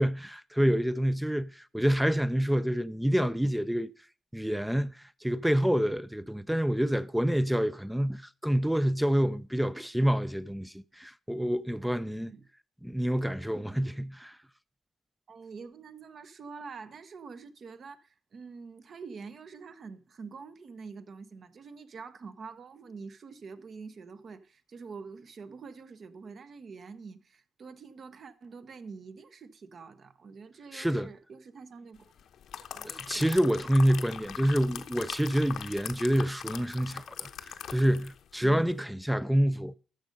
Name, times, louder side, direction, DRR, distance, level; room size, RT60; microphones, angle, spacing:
voice 1, 0.0-3.9 4.3-12.3 12.8-14.4 30.7-31.1 32.8-39.8, equal, 5° right, 0.5 m, -27 dB
voice 2, 12.1-12.5 15.3-32.1 32.7-33.4, right 5 dB, 50° right, 1.0 m, -46 dB
sound 1, 32.2-38.2 38.6-38.7, left 9 dB, 70° left, 0.9 m, -42 dB
13.0 x 6.5 x 5.3 m
cardioid pair, 90°, 0 cm